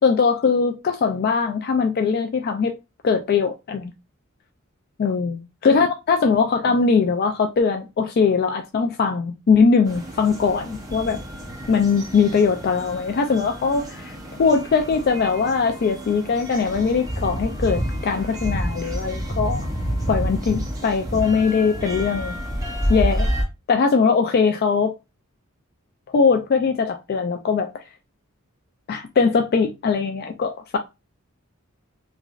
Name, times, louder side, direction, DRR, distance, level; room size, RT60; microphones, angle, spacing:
voice 1, 0.0-2.7 3.0-3.9 5.0-5.3 5.6-11.2 11.7-19.7 20.1-22.4 22.9-23.3 23.7-24.9 26.1-27.7 28.9-30.8, left 5 dB, 50° left, 0.3 m, -21 dB
sound 1, 9.9-23.4, equal, 15° right, 0.6 m, -29 dB
3.1 x 2.4 x 2.3 m
head